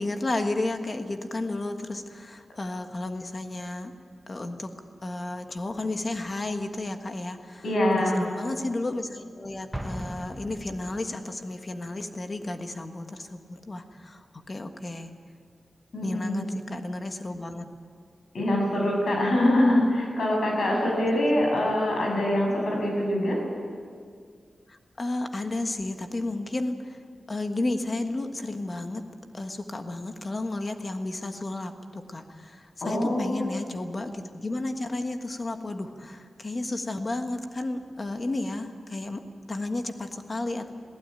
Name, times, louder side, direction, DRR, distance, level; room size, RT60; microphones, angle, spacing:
voice 1, 0.0-3.9 4.3-4.7 5.0-7.6 7.9-15.1 16.0-17.7 24.7-27.0 27.3-29.0 29.3-39.2 39.5-40.7, left 2 dB, 30° left, 6 dB, 1.4 m, -32 dB
voice 2, 7.6-8.2 15.9-16.4 18.3-23.4 32.8-33.5, left 1 dB, 70° left, -1 dB, 7.0 m, -24 dB
Explosion, 9.7-11.3, right 1 dB, 5° right, 1.1 m, -37 dB
22.0 x 16.0 x 9.0 m, 2.1 s
wide cardioid pair, 160°, 0 cm